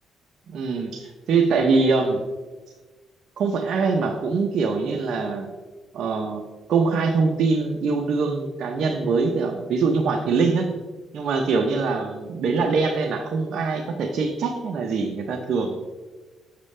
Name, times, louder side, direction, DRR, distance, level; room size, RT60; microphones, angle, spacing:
voice 1, 0.5-2.2 3.4-5.5 5.9-10.7 11.1-15.8, right 4 dB, 65° right, 2 dB, 0.7 m, -23 dB
7.4 x 7.0 x 3.3 m, 1.3 s
cardioid pair, 90°, 0 cm